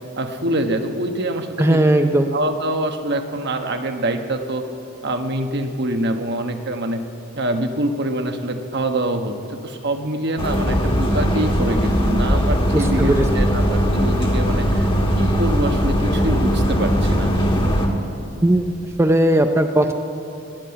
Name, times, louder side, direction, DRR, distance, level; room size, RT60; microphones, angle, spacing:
voice 1, 0.2-2.1 2.3-4.6 5.0-7.0 7.3-14.9 15.1-17.3, right 1 dB, 60° right, 6 dB, 1.1 m, -25 dB
voice 2, 1.6-2.3 12.7-13.3 18.4-18.6 19.0-19.9, right 1 dB, 15° right, 6 dB, 0.5 m, -17 dB
sound 1, 10.4-17.9, equal, 25° left, 1.8 m, -19 dB
18.0 x 7.6 x 9.6 m, 2.7 s
head